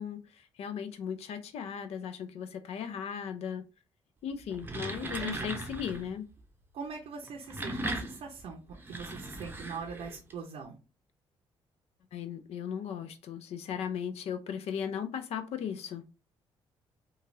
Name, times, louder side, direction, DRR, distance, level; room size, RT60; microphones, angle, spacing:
voice 1, 0.0-3.6 4.2-6.3 12.1-16.2, left 8 dB, 70° left, 10 dB, 0.5 m, -37 dB
sound 1, 4.4-6.1 7.2-10.3, right 2 dB, 20° right, 0.6 m, -38 dB
voice 2, 6.7-8.6 8.9-10.8, right 5 dB, 65° right, 1 dB, 0.6 m, -41 dB
3.1 x 2.3 x 2.6 m, 0.31 s
supercardioid pair, 70°, 11 cm